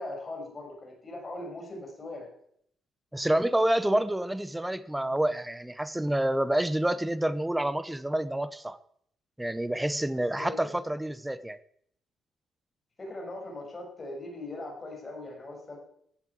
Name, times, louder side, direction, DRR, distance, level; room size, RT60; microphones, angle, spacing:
voice 1, 0.0-2.3 10.4-10.5 13.0-15.8, left 2 dB, 20° left, 6.3 m, -40 dB
voice 2, 3.1-8.8 9.4-11.6, right 1 dB, 5° right, 0.8 m, -28 dB
16.0 x 8.7 x 8.6 m
cardioid pair, 145°, 0 cm